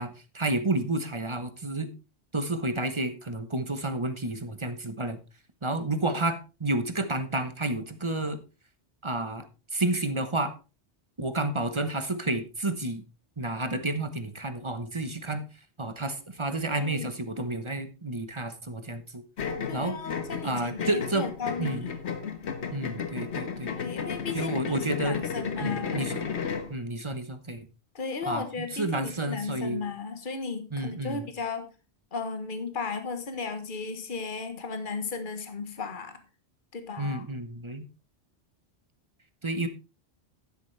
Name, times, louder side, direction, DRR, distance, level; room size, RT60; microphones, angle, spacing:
voice 1, 0.0-1.9 2.3-5.2 5.6-8.4 9.0-9.5 9.7-10.5 11.2-13.0 13.4-15.4 15.8-19.2 19.7-20.0 20.4-21.3 21.6-21.9 22.7-23.7 24.3-25.3 25.6-26.2 26.7-27.7 28.3-29.8 30.7-31.2 37.0-37.8 39.4-39.7, right 2 dB, 25° right, 1.1 m, -30 dB
voice 2, 16.6-17.1 19.7-21.9 23.6-26.1 27.9-31.7 32.1-36.2 36.7-37.2, left 4 dB, 45° left, 1.6 m, -35 dB
sound 1, 19.4-26.7, left 6 dB, 70° left, 1.5 m, -34 dB
11.5 x 11.0 x 3.3 m
omnidirectional pair, 1.2 m